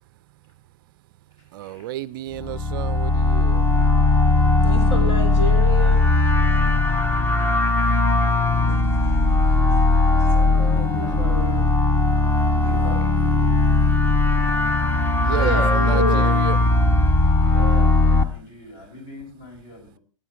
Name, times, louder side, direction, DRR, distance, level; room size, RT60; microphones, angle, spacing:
voice 1, 1.5-3.7 15.2-16.6, right 14 dB, 40° right, 0.5 m, -31 dB
sound 1, 2.4-18.2, left 2 dB, 10° left, 0.9 m, -18 dB
voice 2, 4.6-6.0 8.7-9.2 9.9-10.0 10.4-11.7 15.3-16.4, equal, 60° left, 3.5 m, -29 dB
voice 3, 11.0-11.4 12.6-13.6 17.4-20.0, left 3 dB, 40° left, 5.9 m, -40 dB
20.5 x 9.6 x 3.0 m
figure-of-eight pair, 100°, 17 cm